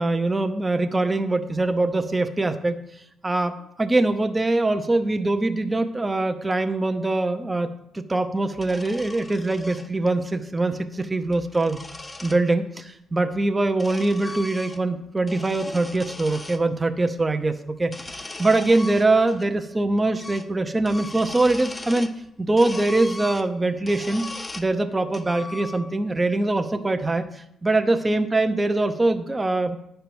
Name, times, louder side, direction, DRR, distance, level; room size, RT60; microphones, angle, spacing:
voice 1, 0.0-2.8 3.2-11.8 12.2-12.7 13.1-24.3 24.6-29.8, right 2 dB, 20° right, 7 dB, 0.6 m, -23 dB
sound 1, 8.6-9.9 11.1-12.4 13.3-15.0 15.2-16.6 17.8-19.5 19.7-19.8 20.2-20.5 20.8-22.2 22.6-24.7 25.1-26.1, left 2 dB, 20° left, 0.7 m, -39 dB
10.0 x 4.5 x 6.9 m, 0.80 s
cardioid pair, 90°, 0 cm